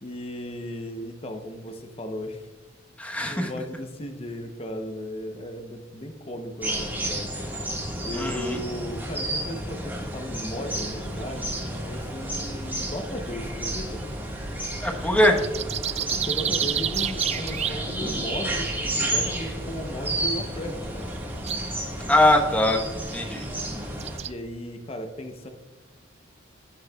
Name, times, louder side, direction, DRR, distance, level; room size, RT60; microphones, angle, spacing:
voice 1, 0.0-2.5 3.2-14.0 16.1-21.1 24.2-25.5, left 1 dB, 30° left, 5 dB, 0.7 m, -36 dB
voice 2, 3.0-3.5 8.1-8.6 14.8-15.4 22.1-22.8 23.1-23.4, left 1 dB, 5° left, 2 dB, 1.1 m, -21 dB
sound 1, 6.6-24.2, right 1 dB, 10° right, 1.6 m, -32 dB
sound 2, 10.8-24.3, right 9 dB, 35° right, 0.3 m, -35 dB
15.5 x 6.4 x 2.3 m, 1.3 s
head